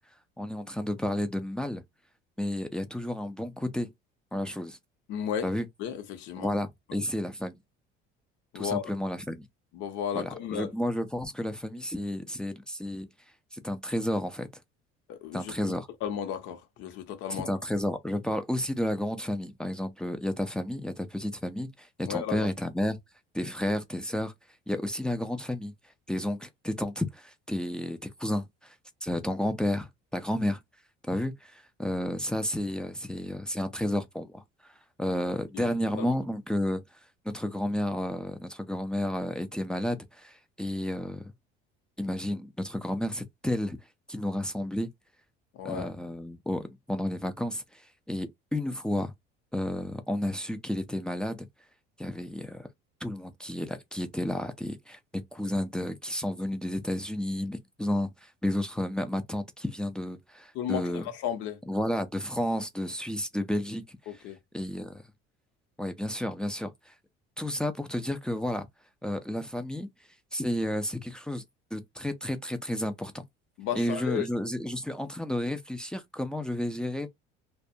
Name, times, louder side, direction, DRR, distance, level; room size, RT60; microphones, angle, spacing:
voice 1, 0.4-1.8 2.4-3.9 4.3-4.8 5.4-5.7 6.4-7.6 8.5-9.5 10.1-13.1 13.5-14.5 15.3-15.9 17.3-23.0 23.3-24.3 24.7-25.7 26.1-28.7 29.0-30.6 31.1-36.8 37.3-41.2 42.0-43.8 44.1-44.9 45.6-49.1 49.5-51.5 52.0-52.7 53.0-61.1 61.7-64.2 64.5-65.0 65.8-66.9 67.4-68.7 69.0-69.9 70.3-71.4 71.7-73.2 73.7-77.1, left 1 dB, 5° left, 0.4 m, -31 dB
voice 2, 5.1-5.5 5.8-6.5 6.9-7.0 8.5-8.9 9.7-10.7 15.1-15.5 16.0-17.5 22.0-22.5 35.5-35.7 36.0-36.1 45.5-45.9 60.5-61.6 64.1-64.4 73.6-74.3, left 9 dB, 70° left, 0.8 m, -34 dB
2.3 x 2.2 x 2.7 m
cardioid pair, 120°, 20 cm